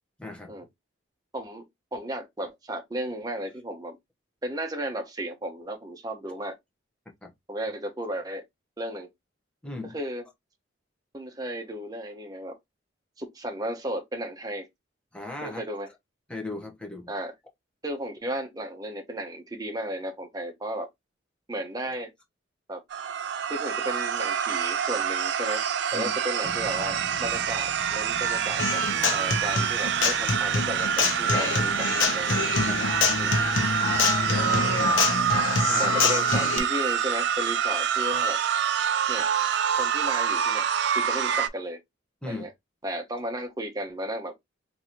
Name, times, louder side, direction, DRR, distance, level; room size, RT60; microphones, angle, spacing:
voice 1, 0.2-0.7 7.2-7.3 9.6-10.0 15.1-15.6 16.3-17.1 25.9-26.1 32.6-32.8 34.2-35.0 35.7-35.9 42.2-42.4, left 2 dB, 5° left, 0.9 m, -37 dB
voice 2, 1.3-1.7 1.9-4.0 4.4-6.6 7.5-8.4 8.8-9.1 9.9-10.2 11.1-12.6 13.2-14.7 15.4-15.9 17.1-17.3 17.8-20.9 21.5-22.1 22.7-22.8 23.5-25.6 25.9-28.8 29.1-31.9 32.1-32.4 33.2-33.4 35.8-38.4 39.1-39.3 39.8-41.8 42.2-42.5 42.8-44.3, right 1 dB, 20° right, 0.7 m, -34 dB
sound 1, 22.9-41.5, right 8 dB, 60° right, 0.3 m, -26 dB
sound 2, 26.4-35.4, left 1 dB, 55° left, 0.8 m, -44 dB
Human voice / Acoustic guitar, 28.6-36.6, left 4 dB, 85° left, 0.8 m, -26 dB
3.6 x 2.6 x 2.9 m
head